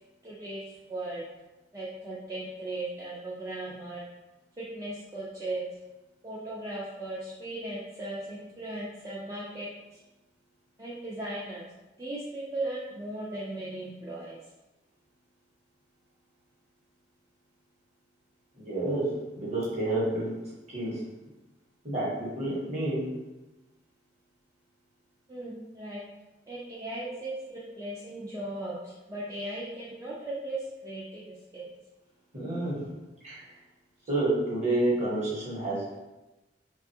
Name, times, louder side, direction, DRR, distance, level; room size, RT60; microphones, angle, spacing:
voice 1, 0.2-0.6 0.9-1.2 1.7-4.0 4.6-5.7 6.2-10.0 10.8-11.6 12.0-14.4 25.3-26.1 26.5-31.2 31.5-31.6, right 1 dB, 20° right, -7 dB, 0.4 m, -37 dB
voice 2, 18.5-21.0 21.8-23.0 32.3-32.9 33.2-33.5 34.1-36.0, right 2 dB, 40° right, -7 dB, 1.0 m, -29 dB
2.7 x 2.3 x 2.6 m, 1.0 s
head